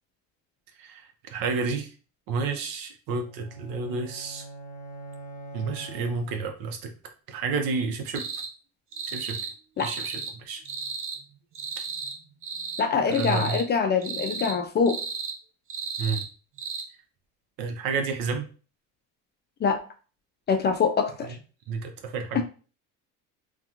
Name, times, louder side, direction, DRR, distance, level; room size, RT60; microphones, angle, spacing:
voice 1, 1.3-1.9 2.3-4.4 5.5-6.9 7.3-8.2 9.1-9.4 9.8-10.6 13.1-13.6 16.0-16.2 17.6-18.5 21.7-22.4, right 4 dB, 70° right, 5 dB, 0.7 m, -30 dB
sound 1, 3.1-6.6, right 2 dB, 90° left, 0.6 m, -43 dB
sound 2, 8.1-8.5 8.9-9.5 9.8-10.3 10.6-11.2 11.5-12.2 12.4-12.8 13.1-13.6 14.0-14.5 14.9-15.4 15.7-16.3 16.6-16.8, right 5 dB, 40° right, 0.5 m, -34 dB
voice 2, 12.8-15.0 19.6-19.8 20.5-21.4 22.3-22.4, left 5 dB, 30° left, 6 dB, 0.4 m, -24 dB
2.8 x 2.3 x 2.4 m, 0.37 s
supercardioid pair, 100°, 36 cm